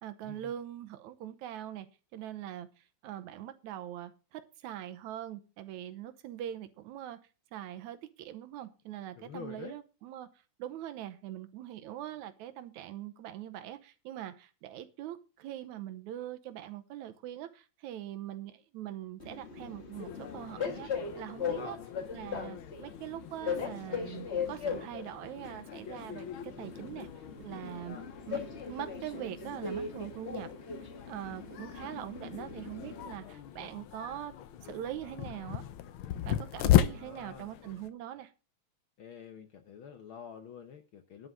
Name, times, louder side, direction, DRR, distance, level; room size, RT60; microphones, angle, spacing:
voice 1, 0.0-1.9 2.1-2.7 3.0-7.2 7.5-10.3 10.6-21.8 22.1-27.1 27.4-28.0 28.3-28.4 28.7-30.5 30.8-34.3 34.6-35.6 36.3-38.3, right 12 dB, 80° right, 2.3 m, -42 dB
voice 2, 9.1-9.8 21.5-21.8 27.8-28.0 33.2-33.4 36.9-37.5 39.0-41.3, left 7 dB, 65° left, 1.4 m, -47 dB
Train, 19.2-33.2, left 6 dB, 40° left, 1.0 m, -39 dB
sound 1, 19.9-37.9, left 11 dB, 80° left, 1.1 m, -37 dB
11.5 x 5.1 x 7.6 m
omnidirectional pair, 3.3 m